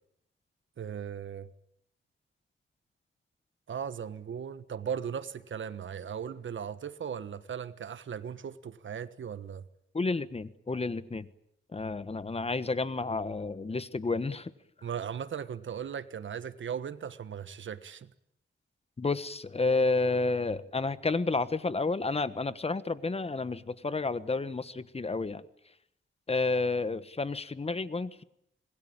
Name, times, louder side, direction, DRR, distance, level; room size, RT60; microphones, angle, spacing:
voice 1, 0.8-1.5 3.7-9.6 14.8-18.1, right 7 dB, 70° right, 1.4 m, -37 dB
voice 2, 9.9-11.3 11.7-14.5 19.0-25.4 26.3-28.2, left 3 dB, 30° left, 1.3 m, -30 dB
26.5 x 20.5 x 8.9 m
wide cardioid pair, 95°, 21 cm